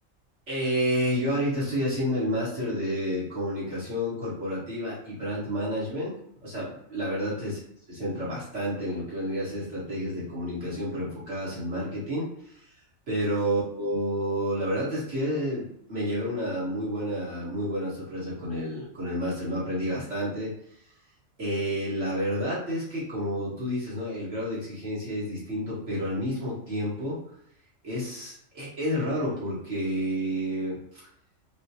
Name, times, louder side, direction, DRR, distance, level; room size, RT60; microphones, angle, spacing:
voice 1, 0.5-6.1 6.4-7.6 7.9-12.6 13.1-20.5 21.4-27.2 27.8-31.0, equal, 60° right, -9 dB, 2.0 m, -30 dB
5.4 x 2.2 x 2.8 m, 0.71 s
omnidirectional pair, 1.4 m